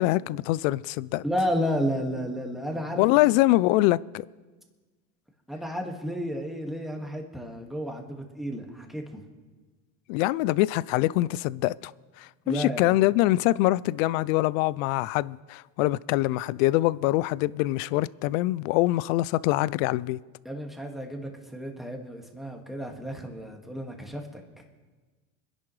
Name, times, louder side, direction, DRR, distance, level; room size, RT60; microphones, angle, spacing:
voice 1, 0.0-1.2 2.9-4.2 10.1-11.9 12.2-20.2, left 17 dB, 70° left, 0.5 m, -24 dB
voice 2, 1.2-3.0 5.5-9.2 12.5-13.0 20.5-24.4, equal, ahead, 1.9 m, -32 dB
25.5 x 10.5 x 3.3 m
supercardioid pair, 115°, 40 cm